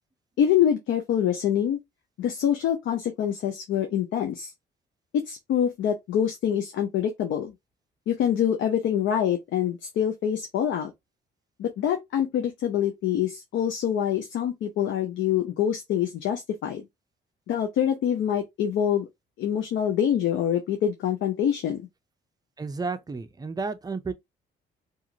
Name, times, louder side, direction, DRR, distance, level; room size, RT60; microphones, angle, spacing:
voice 1, 0.4-1.8 2.2-4.5 5.3-7.5 8.1-10.9 11.6-16.8 17.5-19.1 19.4-21.8, left 9 dB, 75° left, 0.5 m, -25 dB
voice 2, 22.6-24.1, right 4 dB, 20° right, 0.5 m, -32 dB
2.4 x 2.4 x 2.7 m
cardioid pair, 90°, 20 cm